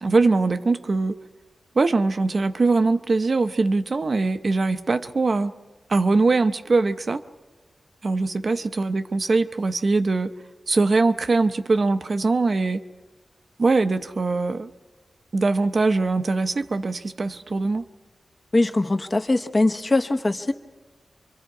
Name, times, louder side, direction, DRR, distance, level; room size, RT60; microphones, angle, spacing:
voice 1, 0.0-1.2 1.8-5.5 5.9-7.2 8.0-10.3 10.7-12.8 13.6-14.7 15.3-17.9, right 3 dB, 50° right, 9 dB, 0.7 m, -22 dB
voice 2, 18.5-20.5, left 2 dB, 35° left, 7 dB, 1.0 m, -21 dB
27.0 x 24.0 x 4.8 m, 1.3 s
wide cardioid pair, 100°, 0 cm